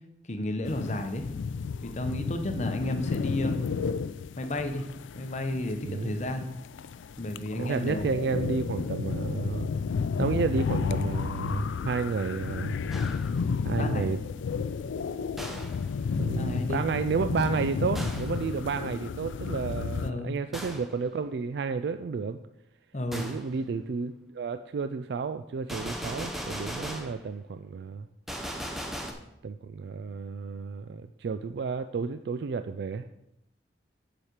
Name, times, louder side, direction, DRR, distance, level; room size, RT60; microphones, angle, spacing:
voice 1, 0.3-1.3 1.8-3.6 4.4-4.9 5.1-6.5 7.2-8.3 13.8-14.1 16.4-16.8 20.0-20.4 22.9-23.3, left 1 dB, 40° left, 7 dB, 0.8 m, -32 dB
sound 1, 0.6-20.1, left 5 dB, 90° left, 0.3 m, -32 dB
voice 2, 5.8-6.1 7.6-9.7 10.2-12.8 13.6-14.2 16.2-22.4 23.1-28.1 29.4-33.1, right 5 dB, 65° right, 10 dB, 0.3 m, -31 dB
Gunshot gunfire, 12.9-13.4 15.4-15.9 17.9-18.4 20.5-21.0 23.1-23.5 25.7-27.2 28.3-29.1, equal, ahead, 0.7 m, -37 dB
7.2 x 5.0 x 6.5 m, 0.84 s
head